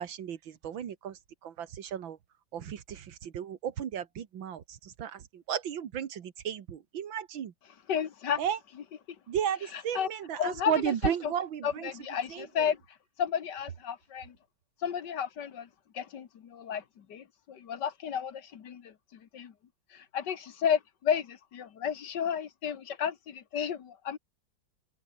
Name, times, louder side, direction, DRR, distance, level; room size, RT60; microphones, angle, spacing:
voice 1, 0.0-2.2 2.5-7.5 8.4-8.6 9.3-11.9 12.3-12.7, right 9 dB, 80° right, 2.2 m, -34 dB
voice 2, 7.9-8.4 9.7-10.1 10.4-11.3 11.6-12.8 13.2-14.4 14.8-15.7 15.9-19.5 19.9-24.2, left 8 dB, 65° left, 1.9 m, -32 dB
omnidirectional pair, 2.1 m